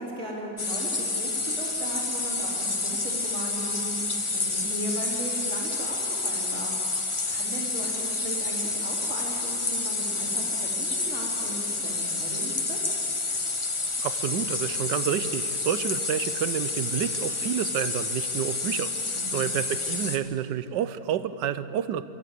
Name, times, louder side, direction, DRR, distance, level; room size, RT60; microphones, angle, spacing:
voice 1, 0.0-6.7 7.3-12.8 19.1-19.5, right 1 dB, 35° right, -5 dB, 4.4 m, -37 dB
sound 1, 0.6-20.2, left 3 dB, 25° left, 0.8 m, -29 dB
voice 2, 14.0-22.0, right 9 dB, 75° right, 14 dB, 1.3 m, -29 dB
23.5 x 13.5 x 8.4 m, 2.8 s
omnidirectional pair, 1.9 m